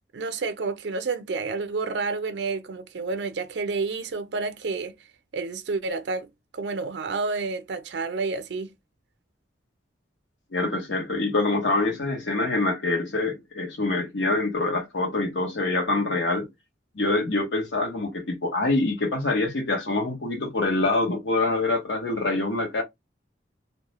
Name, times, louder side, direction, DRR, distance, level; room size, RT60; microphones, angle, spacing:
voice 1, 0.1-4.9 5.3-6.3 6.5-8.7, right 4 dB, 65° right, 0.4 m, -29 dB
voice 2, 10.5-16.5 17.0-22.8, left 2 dB, 75° left, 0.9 m, -25 dB
2.2 x 2.1 x 2.9 m
head